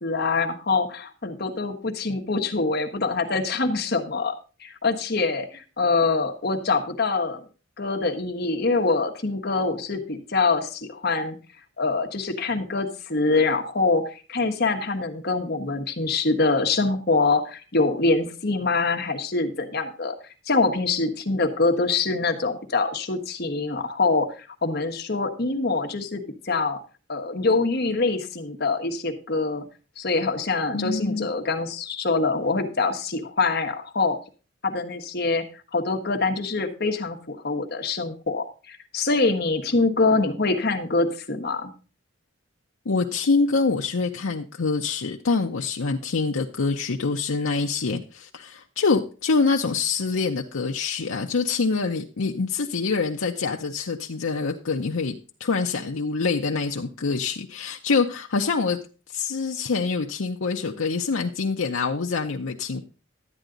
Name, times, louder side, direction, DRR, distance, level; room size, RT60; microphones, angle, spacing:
voice 1, 0.0-4.3 4.6-7.5 7.8-11.4 11.8-26.8 27.1-29.6 30.0-34.2 34.6-41.7, left 3 dB, 50° left, 4 dB, 1.4 m, -24 dB
voice 2, 30.7-31.3 42.9-58.8 59.1-62.8, left 4 dB, 85° left, 2 dB, 0.7 m, -25 dB
12.0 x 9.1 x 3.9 m, 0.34 s
head